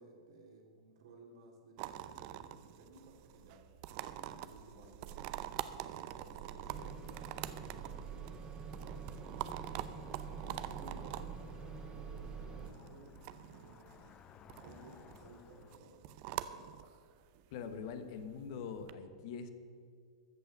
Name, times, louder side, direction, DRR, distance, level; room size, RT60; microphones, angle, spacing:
voice 1, 0.0-3.7 4.1-5.3 5.7-9.1 9.6-11.4 11.9-14.1 14.6-16.1 16.4-16.7, right 2 dB, 65° right, 2 dB, 2.5 m, -58 dB
sound 1, 1.8-18.9, right 13 dB, 50° right, 0.6 m, -46 dB
sound 2, 6.7-12.7, right 5 dB, 30° right, 2.0 m, -46 dB
Cricket / Motor vehicle (road), 8.9-15.8, left 9 dB, 30° left, 0.5 m, -59 dB
voice 2, 17.5-19.5, left 6 dB, 55° left, 9 dB, 1.2 m, -43 dB
14.0 x 5.7 x 7.9 m, 2.2 s
hypercardioid pair, 105°, 3 cm